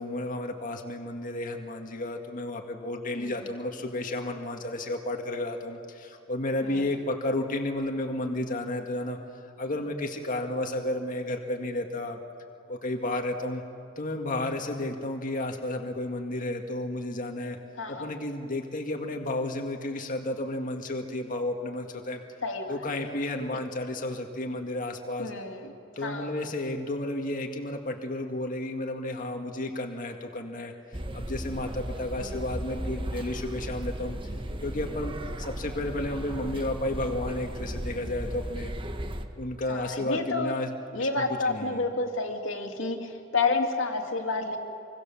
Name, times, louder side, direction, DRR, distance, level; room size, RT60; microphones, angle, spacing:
voice 1, 0.0-9.2 9.6-12.2 12.7-13.6 14.0-17.6 17.9-22.2 22.7-25.3 26.0-30.7 31.1-34.2 34.6-38.7 39.4-40.7 41.0-41.8, left 1 dB, 45° left, 3 dB, 2.0 m, -32 dB
voice 2, 3.2-3.5 6.6-7.0 17.8-18.1 22.4-23.1 25.2-25.7 26.0-26.5 32.2-32.5 39.7-40.5 40.9-44.6, left 3 dB, 70° left, 4 dB, 2.7 m, -30 dB
sound 1, 30.9-39.3, right 1 dB, 25° right, 1.4 m, -35 dB
26.5 x 24.5 x 7.2 m, 2.6 s
head